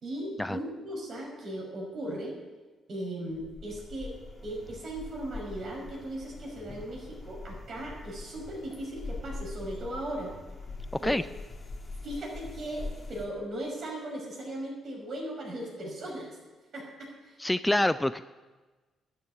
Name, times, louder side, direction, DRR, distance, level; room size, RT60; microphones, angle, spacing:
voice 1, 0.0-2.4 2.9-4.1 4.4-10.3 11.0-11.1 12.0-16.3 16.7-17.4, right 1 dB, 55° right, -1 dB, 5.8 m, -37 dB
sound 1, 3.3-13.3, left 3 dB, 25° left, 1.9 m, -43 dB
voice 2, 17.4-18.2, left 1 dB, 10° left, 13 dB, 0.3 m, -26 dB
12.5 x 7.2 x 9.6 m, 1.3 s
cardioid pair, 90°, 0 cm